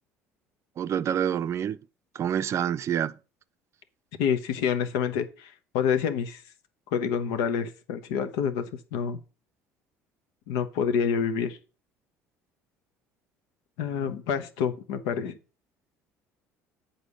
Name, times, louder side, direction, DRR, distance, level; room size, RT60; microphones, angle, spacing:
voice 1, 0.8-1.8 2.1-3.2, right 9 dB, 45° right, 0.5 m, -27 dB
voice 2, 4.2-5.3 5.7-6.4 6.9-8.6 8.9-9.2 10.5-11.6 13.8-15.3, left 7 dB, 75° left, 0.9 m, -27 dB
8.1 x 4.2 x 6.3 m
hypercardioid pair, 75°, 7 cm